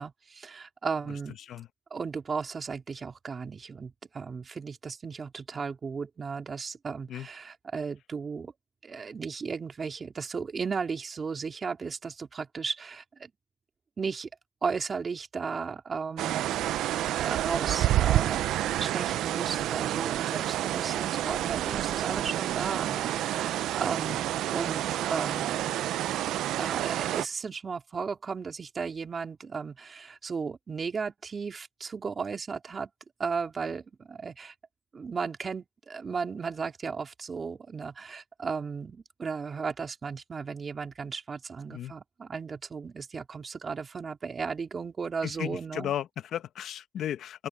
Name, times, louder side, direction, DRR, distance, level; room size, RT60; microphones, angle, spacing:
voice 1, 0.0-1.4 1.9-8.5 8.8-13.3 14.0-14.3 14.6-16.6 16.9-18.5 18.7-25.7 26.0-26.1 26.6-32.9 33.2-34.5 34.9-45.9, right 5 dB, 40° right, 3.6 m, -35 dB
sound 1, 16.2-27.3, right 13 dB, 85° right, 0.5 m, -29 dB
voice 2, 45.2-47.5, left 10 dB, 70° left, 1.2 m, -35 dB
open air
cardioid pair, 90°, 0 cm